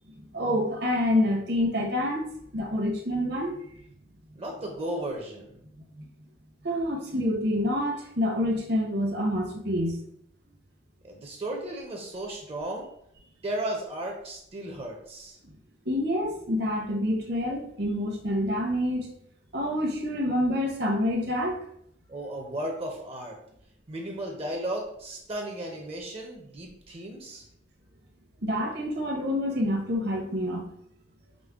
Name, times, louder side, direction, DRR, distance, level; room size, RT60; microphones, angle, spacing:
voice 1, 0.3-2.2 2.5-3.6 6.0-6.1 6.6-10.0 15.8-19.1 19.5-21.6 28.4-30.6, left 1 dB, 60° right, 0 dB, 0.9 m, -27 dB
voice 2, 4.4-5.6 11.0-12.9 13.4-15.4 22.1-23.4 23.9-27.4, right 1 dB, 30° right, 1 dB, 0.6 m, -35 dB
5.1 x 2.0 x 3.5 m, 0.71 s
head